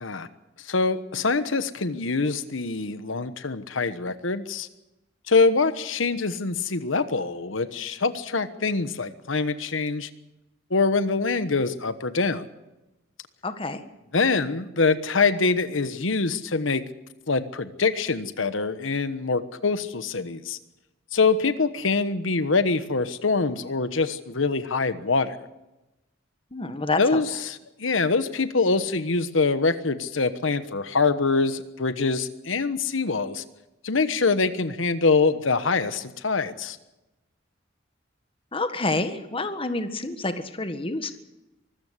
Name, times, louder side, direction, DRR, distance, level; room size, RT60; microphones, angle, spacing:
voice 1, 0.6-4.7 5.3-10.1 10.7-12.4 14.1-16.8 17.3-20.6 21.1-25.4 27.0-33.4 33.8-36.8, left 4 dB, 80° left, 12 dB, 1.2 m, -24 dB
voice 2, 13.4-13.8 26.5-27.2 38.5-41.1, left 2 dB, 30° left, 9 dB, 1.6 m, -28 dB
24.5 x 14.5 x 8.1 m, 0.97 s
head